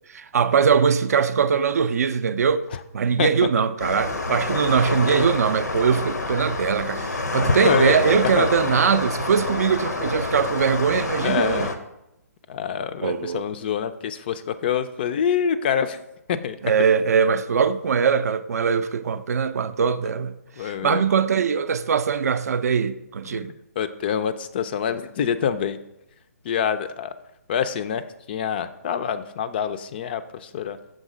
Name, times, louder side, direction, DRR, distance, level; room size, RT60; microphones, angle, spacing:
voice 1, 0.1-2.6 2.9-11.7 13.0-13.4 16.6-23.5, right 6 dB, 65° right, 0.4 m, -21 dB
sound 1, 3.8-11.8, left 3 dB, 90° left, 0.8 m, -27 dB
voice 2, 7.2-8.0 8.4-8.5 11.2-11.7 12.5-16.0 16.3-16.6 20.6-21.1 23.3-25.8 26.4-27.1 27.5-30.8, left 8 dB, 35° left, 0.3 m, -26 dB
6.4 x 3.7 x 4.9 m
hypercardioid pair, 145°, 9 cm